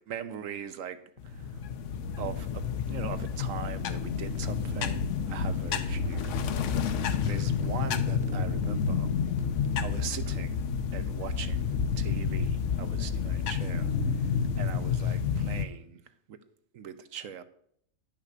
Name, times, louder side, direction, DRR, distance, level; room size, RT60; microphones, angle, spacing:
voice 1, 0.1-1.0 1.2-1.6 2.2-6.4 7.3-9.1 9.8-10.6 10.9-16.0 16.3-16.4 16.7-17.4, right 8 dB, 75° right, 1.2 m, -41 dB
sound 1, 1.2-15.7, left 6 dB, 65° left, 1.0 m, -30 dB
10.5 x 5.8 x 6.6 m
omnidirectional pair, 1.4 m